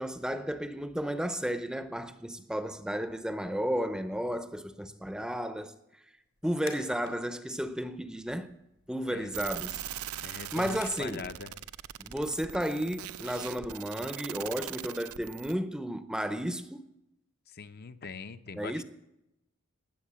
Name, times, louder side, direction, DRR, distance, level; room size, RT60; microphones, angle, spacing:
voice 1, 0.0-5.7 6.4-8.6 8.9-9.8 10.3-11.3 12.0-16.9 18.5-18.8, equal, 5° right, 0.6 m, -33 dB
sound 1, 6.4-7.2 7.6-11.4, left 5 dB, 75° left, 3.3 m, -51 dB
sound 2, 9.3-15.5, right 11 dB, 85° right, 0.6 m, -41 dB
voice 2, 10.2-11.5 17.5-18.8, left 5 dB, 45° left, 0.6 m, -42 dB
18.5 x 8.1 x 7.5 m
head